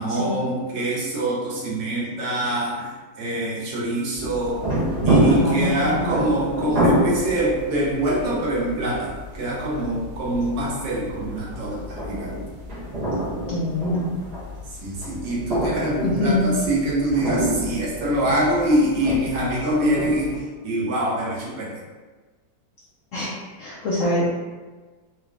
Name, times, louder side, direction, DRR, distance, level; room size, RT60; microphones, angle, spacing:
voice 1, 0.0-4.6 5.0-12.4 14.8-21.8, right 1 dB, 70° right, -5 dB, 1.6 m, -24 dB
sound 1, 4.1-20.4, right 1 dB, 45° right, 0.5 m, -27 dB
voice 2, 5.4-6.1 13.5-14.1 16.0-16.6 23.1-24.3, left 1 dB, 65° left, -7 dB, 0.8 m, -24 dB
4.5 x 2.4 x 3.3 m, 1.3 s
omnidirectional pair, 2.0 m